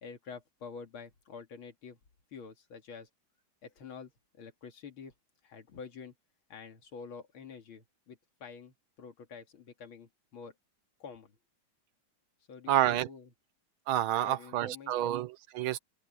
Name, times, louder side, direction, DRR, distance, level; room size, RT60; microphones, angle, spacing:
voice 1, 0.0-2.0 2.3-3.1 3.6-4.1 4.4-5.1 5.4-6.1 6.5-10.5 11.0-11.4 12.5-13.3 14.2-15.2, left 5 dB, 85° left, 3.0 m, -48 dB
voice 2, 12.7-13.1 13.9-15.8, right 13 dB, 85° right, 1.6 m, -29 dB
open air
omnidirectional pair, 2.2 m